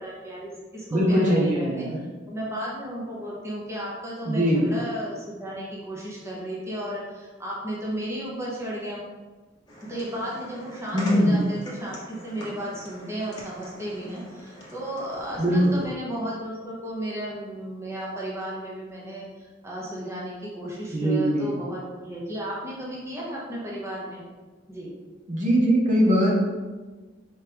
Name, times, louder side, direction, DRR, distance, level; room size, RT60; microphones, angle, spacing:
voice 1, 0.0-9.0 9.8-24.2 24.7-24.9, right 1 dB, 15° right, -5 dB, 0.9 m, -34 dB
voice 2, 0.9-2.0 4.2-4.7 10.9-11.4 15.4-15.8 20.9-21.5 25.3-26.3, equal, 45° right, -4 dB, 0.8 m, -21 dB
sound 1, 9.7-15.9, equal, 20° left, 0.9 m, -43 dB
4.4 x 3.3 x 3.4 m, 1.3 s
head